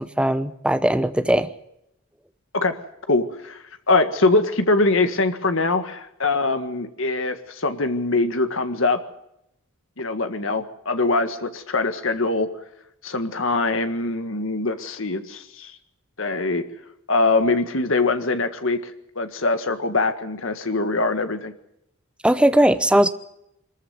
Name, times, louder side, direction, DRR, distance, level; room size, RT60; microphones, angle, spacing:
voice 1, 0.0-1.5 22.2-23.1, right 1 dB, 5° right, 11 dB, 0.8 m, -19 dB
voice 2, 3.1-9.0 10.0-12.5 13.0-15.7 16.2-16.6 17.1-18.8 19.2-21.5, left 3 dB, 60° left, 8 dB, 1.8 m, -23 dB
22.5 x 14.0 x 9.4 m, 0.80 s
head